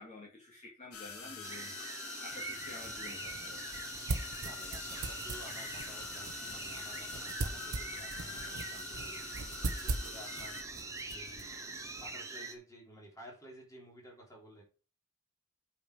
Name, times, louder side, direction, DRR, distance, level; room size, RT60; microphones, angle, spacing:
voice 1, 0.0-1.7 2.2-3.9, left 2 dB, 35° left, -4 dB, 2.3 m, -50 dB
sound 1, 0.9-10.6, left 5 dB, 70° left, 2.0 m, -45 dB
voice 2, 1.2-1.6 4.4-9.4 9.7-10.6 11.1-14.6, equal, 15° left, -2 dB, 3.5 m, -53 dB
sound 2, 1.4-12.5, right 3 dB, 15° right, 1.1 m, -44 dB
sound 3, 2.3-12.2, right 3 dB, 80° right, 1.1 m, -42 dB
8.5 x 5.0 x 5.0 m, 0.36 s
head